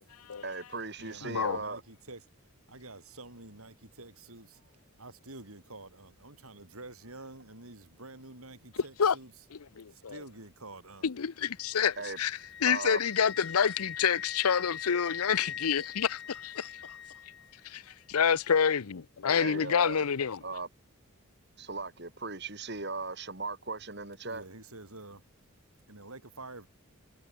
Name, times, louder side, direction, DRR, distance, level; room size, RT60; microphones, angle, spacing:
voice 1, 0.4-1.8 12.0-12.2 12.7-13.0 19.4-20.0 20.4-20.7 21.6-24.4, right 3 dB, 50° right, 3.6 m, -38 dB
voice 2, 1.0-2.2 2.7-9.3 9.9-11.1 24.2-25.2 25.9-26.7, right 2 dB, 80° right, 7.5 m, -48 dB
voice 3, 9.8-10.2 11.0-16.7 17.6-20.4, left 7 dB, 90° left, 0.7 m, -28 dB
Wind instrument woodwind instrument, 11.6-17.5, left 9 dB, 55° left, 2.9 m, -42 dB
head